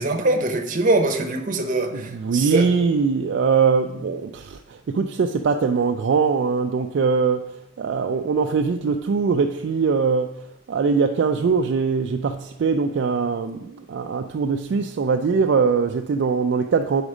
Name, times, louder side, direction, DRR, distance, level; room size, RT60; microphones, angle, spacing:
voice 1, 0.0-2.7, right 2 dB, 45° right, 5 dB, 0.8 m, -22 dB
voice 2, 1.9-10.3 10.7-17.0, right 5 dB, 65° right, 5 dB, 0.3 m, -22 dB
5.0 x 4.9 x 6.2 m, 0.88 s
head